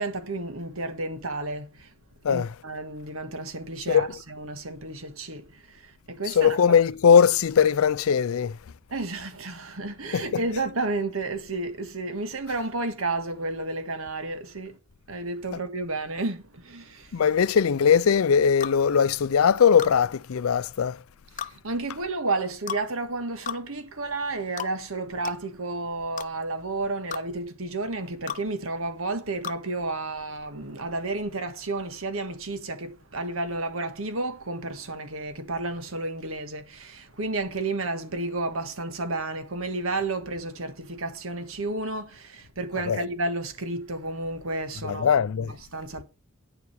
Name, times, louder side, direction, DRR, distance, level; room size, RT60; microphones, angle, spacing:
voice 1, 0.0-1.9 2.3-6.6 8.9-14.8 15.1-17.2 21.3-46.0, right 2 dB, 80° right, 1.6 m, -32 dB
voice 2, 6.3-8.6 10.1-10.4 17.1-21.0 42.9-43.0 44.8-45.5, left 7 dB, 90° left, 0.4 m, -20 dB
sound 1, 18.6-18.8 19.8-20.0 21.4-21.5 22.7-22.9 23.5-23.6 24.6-24.7 25.2-25.4 26.2-26.3 27.1-27.2 28.3-28.4 29.4-29.6, left 8 dB, 40° left, 0.6 m, -33 dB
9.6 x 7.1 x 4.6 m
head